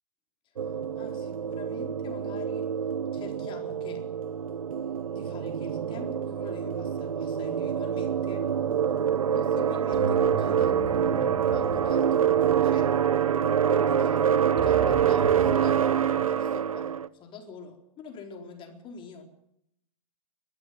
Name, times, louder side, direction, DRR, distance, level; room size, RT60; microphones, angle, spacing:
voice 1, 0.4-2.7 3.1-4.1 5.1-8.7 9.3-12.9 13.7-19.2, left 5 dB, 30° left, 4 dB, 4.2 m, -45 dB
sound 1, 0.6-17.1, right 8 dB, 75° right, 0.9 m, -26 dB
sound 2, 9.9-15.6, right 4 dB, 25° right, 3.6 m, -37 dB
23.5 x 12.5 x 9.3 m, 0.74 s
hypercardioid pair, 110°, 18 cm